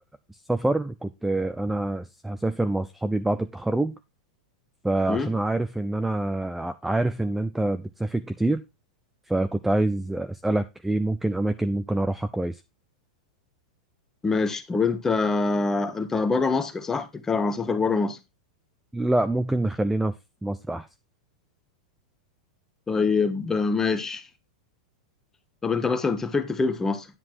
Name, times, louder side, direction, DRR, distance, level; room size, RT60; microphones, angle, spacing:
voice 1, 0.5-3.9 4.8-8.6 9.3-12.6 18.9-20.1 20.4-20.9, right 2 dB, 5° right, 0.5 m, -26 dB
voice 2, 14.2-18.2 22.9-24.2 25.6-27.1, left 4 dB, 10° left, 1.2 m, -25 dB
9.9 x 5.9 x 4.6 m
supercardioid pair, 140°, 4 cm